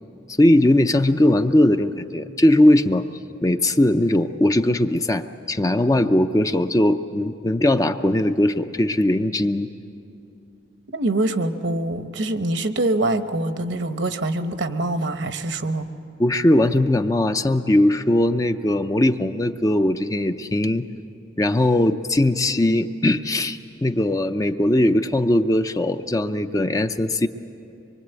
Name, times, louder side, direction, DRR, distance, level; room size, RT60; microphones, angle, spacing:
voice 1, 0.4-3.0 3.4-9.7 16.2-20.9 21.4-27.3, left 1 dB, 15° left, 8 dB, 0.5 m, -19 dB
voice 2, 10.9-15.9, right 2 dB, 65° right, 9 dB, 1.0 m, -24 dB
25.0 x 23.0 x 8.1 m, 2.7 s
head